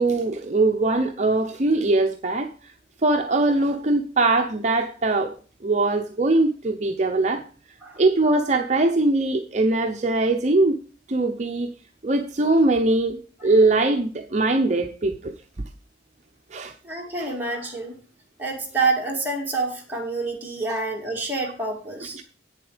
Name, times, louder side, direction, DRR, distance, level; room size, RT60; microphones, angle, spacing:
voice 1, 0.0-2.7 3.0-5.3 5.6-7.4 8.0-10.8 11.1-11.7 12.0-13.2 13.4-15.3 16.5-16.7 17.2-17.3 20.7-20.8 22.1-22.2, right 2 dB, 40° right, 4 dB, 0.7 m, -21 dB
voice 2, 16.8-17.9 18.4-22.2, right 3 dB, 10° right, -2 dB, 2.8 m, -27 dB
8.9 x 7.4 x 5.0 m, 0.40 s
head